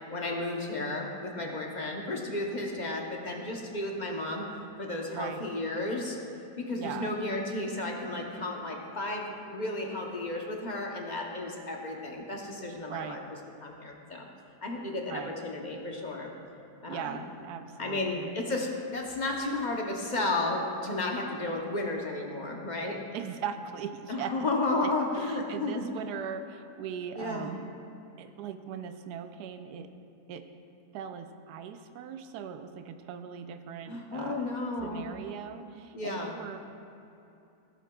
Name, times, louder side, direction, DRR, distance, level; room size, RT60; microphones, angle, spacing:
voice 1, 0.1-4.5 4.8-6.2 6.6-9.2 9.5-13.2 13.6-14.3 14.6-16.3 16.8-17.2 17.8-23.0 24.1-25.8 27.2-27.5 33.9-35.1 35.9-36.3, left 2 dB, 40° left, 0 dB, 0.7 m, -33 dB
voice 2, 5.1-5.4 6.8-7.1 12.9-13.2 15.1-15.3 16.9-18.4 23.1-24.3 24.7-27.7 28.2-29.9 30.3-30.4 30.9-34.5 34.8-36.6, right 8 dB, 80° right, 9 dB, 1.1 m, -39 dB
16.5 x 7.5 x 2.3 m, 2.7 s
omnidirectional pair, 1.7 m